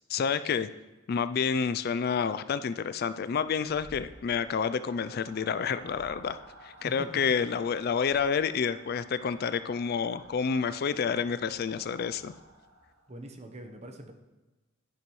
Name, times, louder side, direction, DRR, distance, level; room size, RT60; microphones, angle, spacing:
voice 1, 0.1-0.7 1.1-12.3, left 6 dB, 50° left, 13 dB, 0.3 m, -29 dB
sound 1, 3.3-13.2, right 1 dB, 85° right, 1.4 m, -53 dB
voice 2, 13.1-14.1, right 1 dB, 30° right, 6 dB, 1.0 m, -44 dB
10.5 x 10.5 x 3.1 m, 1.1 s
head